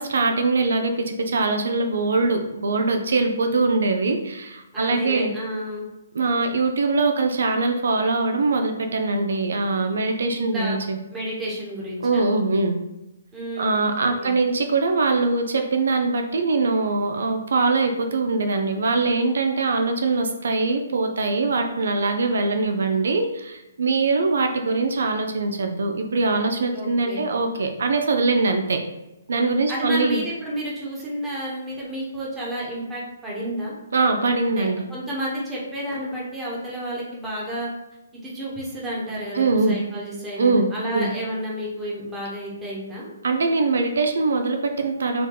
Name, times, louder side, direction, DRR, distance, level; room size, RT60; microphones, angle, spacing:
voice 1, 0.0-5.3 6.1-11.0 12.0-12.8 13.6-28.8 29.3-30.2 33.9-34.8 39.3-39.8 40.4-41.1 43.2-45.3, right 3 dB, 75° right, 5 dB, 0.5 m, -22 dB
voice 2, 4.7-5.8 10.5-10.8 11.1-12.3 13.3-14.4 26.7-27.3 29.7-33.7 34.5-37.7 38.1-43.1, equal, 10° right, -5 dB, 1.1 m, -31 dB
4.7 x 2.2 x 3.8 m, 0.96 s
hypercardioid pair, 160°, 0 cm